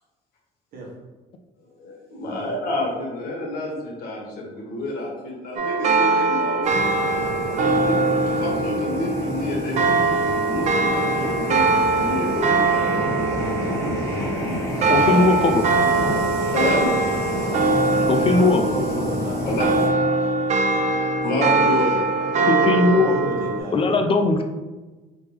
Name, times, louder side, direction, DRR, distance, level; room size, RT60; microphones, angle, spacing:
voice 1, 1.7-6.8 7.4-8.0 8.3-12.6 14.8-15.3 16.5-16.9 17.4-17.5 19.5-19.6 21.2-22.0, left 1 dB, 65° left, -2 dB, 1.3 m, -28 dB
sound 1, 5.6-23.6, right 3 dB, 45° right, 0.5 m, -22 dB
sound 2, 6.6-19.9, left 1 dB, 15° left, 1.2 m, -30 dB
voice 2, 14.9-15.6 18.1-18.6 22.5-23.1 23.7-24.4, left 3 dB, 35° left, 5 dB, 0.4 m, -19 dB
voice 3, 18.2-20.9 22.1-24.0, right 3 dB, 65° right, -3 dB, 1.2 m, -33 dB
3.4 x 2.9 x 3.2 m, 1.2 s
cardioid pair, 110°, 17 cm